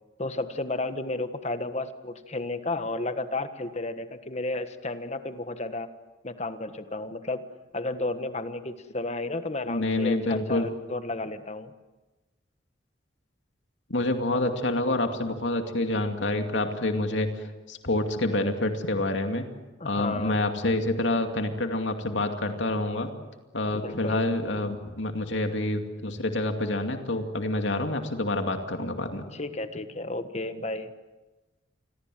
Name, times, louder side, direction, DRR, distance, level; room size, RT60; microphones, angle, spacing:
voice 1, 0.2-5.9 6.2-7.4 7.7-11.7 14.3-14.5 19.8-20.4 23.7-24.3 29.3-30.9, left 2 dB, 35° left, 10 dB, 1.5 m, -32 dB
voice 2, 9.7-10.7 13.9-17.3 17.7-19.5 19.8-23.1 23.5-29.2, left 2 dB, 80° left, 5 dB, 2.4 m, -27 dB
28.5 x 22.0 x 7.7 m, 1.2 s
head